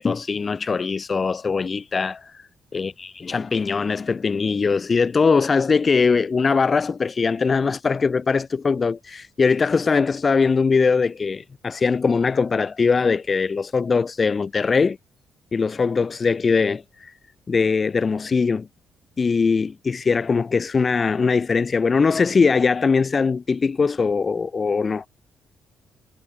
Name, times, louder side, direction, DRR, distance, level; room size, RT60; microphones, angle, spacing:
voice 1, 0.0-15.0 15.5-17.1 17.5-18.7 19.2-25.0, left 5 dB, 35° left, 6.7 m, -21 dB
cardioid pair, 90°, 0 cm